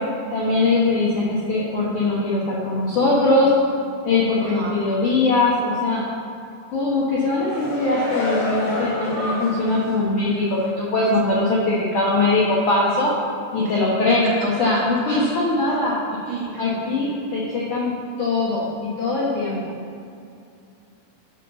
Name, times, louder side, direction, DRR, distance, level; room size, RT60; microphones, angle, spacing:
voice 1, 0.3-3.5 4.0-6.0 6.7-13.1 13.5-15.9 16.6-19.7, left 2 dB, 85° left, -6 dB, 1.7 m, -21 dB
voice 2, 4.3-5.0 13.7-13.8 14.8-14.9 16.3-17.0, right 4 dB, 75° right, -3 dB, 2.9 m, -35 dB
sound 1, 7.2-9.9 10.3-10.4, left 1 dB, 50° left, 1.6 m, -28 dB
8.1 x 5.6 x 6.7 m, 2.5 s
omnidirectional pair, 5.4 m